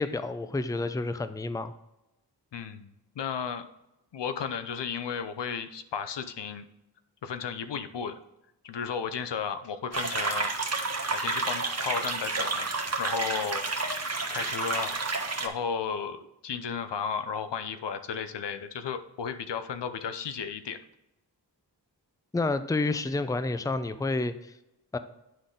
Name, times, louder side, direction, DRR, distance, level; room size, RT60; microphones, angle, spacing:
voice 1, 0.0-1.7 22.3-24.5 24.9-25.0, left 3 dB, 10° left, 11 dB, 0.5 m, -29 dB
voice 2, 2.5-3.7 4.1-6.7 7.2-8.2 8.6-10.5 11.1-12.7 13.0-13.6 14.3-14.9 15.4-20.8, left 6 dB, 75° left, 10 dB, 0.7 m, -34 dB
sound 1, 9.9-15.5, right 3 dB, 35° right, 1.1 m, -30 dB
10.0 x 3.8 x 3.8 m, 0.90 s
cardioid pair, 40°, 42 cm